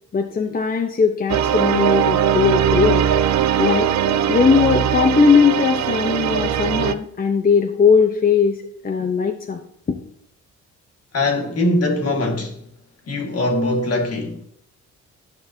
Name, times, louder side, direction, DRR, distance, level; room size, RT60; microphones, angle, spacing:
voice 1, 0.1-3.1 3.6-3.9 4.3-8.6 8.8-9.6 9.9-10.0, left 5 dB, 30° left, 0.7 m, -18 dB
sound 1, 1.3-6.9, right 9 dB, 65° right, 0.5 m, -20 dB
voice 2, 11.1-12.6 13.1-14.4, left 2 dB, 55° left, 1.7 m, -21 dB
11.5 x 5.3 x 2.7 m
cardioid pair, 90°, 30 cm